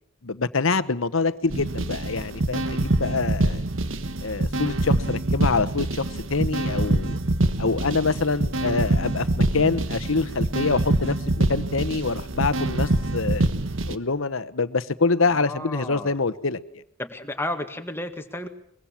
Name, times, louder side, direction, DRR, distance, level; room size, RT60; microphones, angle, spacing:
voice 1, 0.2-3.6 4.2-6.0 6.3-7.2 7.6-13.5 13.9-16.6, left 4 dB, 80° left, 14 dB, 1.1 m, -25 dB
sound 1, 1.5-13.9, right 1 dB, 70° right, 1.3 m, -25 dB
voice 2, 15.3-16.2 17.0-18.5, left 1 dB, 10° left, 6 dB, 1.8 m, -32 dB
23.0 x 22.0 x 7.3 m, 0.70 s
head